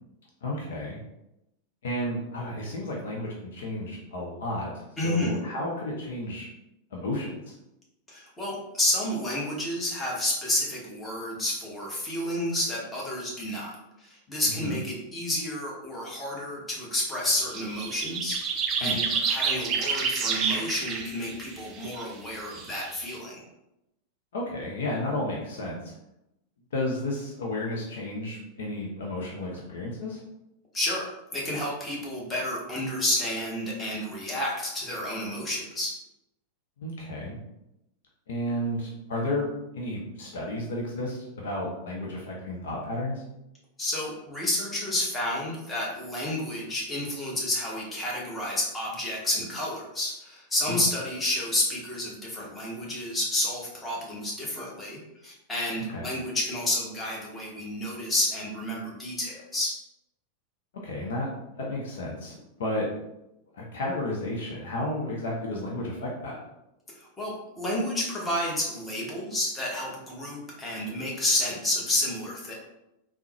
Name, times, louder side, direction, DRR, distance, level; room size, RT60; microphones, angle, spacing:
voice 1, 0.4-1.0 1.8-6.5 6.9-7.5 14.5-14.8 18.8-19.0 24.3-25.9 26.7-30.2 36.8-37.4 38.3-43.2 50.7-50.8 55.9-56.1 60.8-61.3 61.6-62.9 63.5-66.4, left 1 dB, 60° left, -2 dB, 0.6 m, -32 dB
voice 2, 5.0-5.3 8.1-23.5 30.7-35.9 43.8-59.7 67.0-72.5, left 1 dB, 15° left, -4 dB, 1.0 m, -30 dB
sound 1, 17.2-22.0 22.3-23.1, right 5 dB, 30° right, 0.4 m, -29 dB
3.7 x 2.0 x 2.8 m, 0.88 s
figure-of-eight pair, 90°, 0 cm